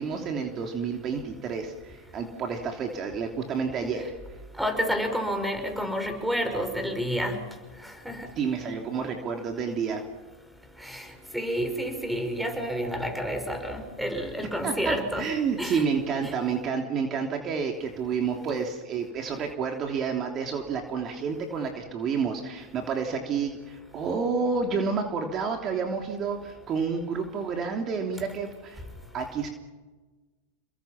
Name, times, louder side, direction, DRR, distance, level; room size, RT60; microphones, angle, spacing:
voice 1, 0.0-4.1 8.4-10.0 14.6-28.8 29.1-29.5, right 5 dB, 35° right, 3 dB, 3.2 m, -30 dB
voice 2, 4.6-7.4 7.8-8.3 10.8-11.1 11.3-15.3 15.6-15.9 16.2-16.3, equal, ahead, 6 dB, 5.7 m, -29 dB
29.0 x 22.5 x 6.0 m, 1.2 s
hypercardioid pair, 110°, 0 cm